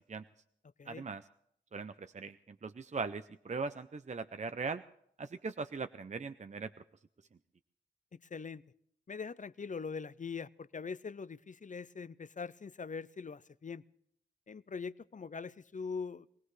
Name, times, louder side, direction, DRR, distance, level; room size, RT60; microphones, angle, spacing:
voice 1, 0.9-1.2 1.7-4.8 5.2-6.7, right 4 dB, 40° right, 10 dB, 0.5 m, -40 dB
voice 2, 8.1-8.6 9.1-13.8 14.5-16.3, left 5 dB, 45° left, 17 dB, 0.5 m, -42 dB
23.5 x 18.0 x 3.2 m, 0.71 s
wide cardioid pair, 60°, 18 cm